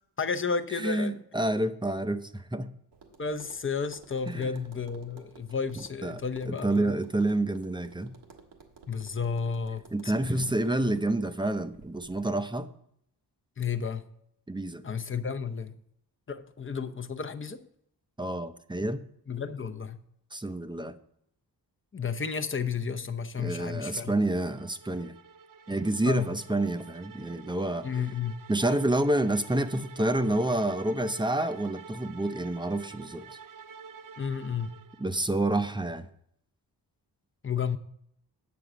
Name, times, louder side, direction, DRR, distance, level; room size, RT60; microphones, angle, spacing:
voice 1, 0.2-1.2 3.2-7.0 8.9-10.1 13.6-14.1 14.8-15.8 16.3-17.6 19.3-20.0 21.9-24.1 26.0-26.3 27.8-28.4 34.2-34.8 37.4-37.8, left 6 dB, 30° left, 0.7 m, -32 dB
voice 2, 0.7-2.7 4.3-4.7 6.0-8.1 9.9-12.7 14.5-14.8 18.2-19.0 20.3-21.0 23.4-25.1 25.7-27.9 28.5-33.4 35.0-36.1, right 1 dB, 10° right, 0.6 m, -28 dB
Tap, 2.9-12.2, right 4 dB, 80° right, 1.6 m, -54 dB
sound 1, 23.9-35.3, right 6 dB, 50° right, 0.6 m, -49 dB
9.4 x 6.9 x 5.0 m
cardioid pair, 90°, 41 cm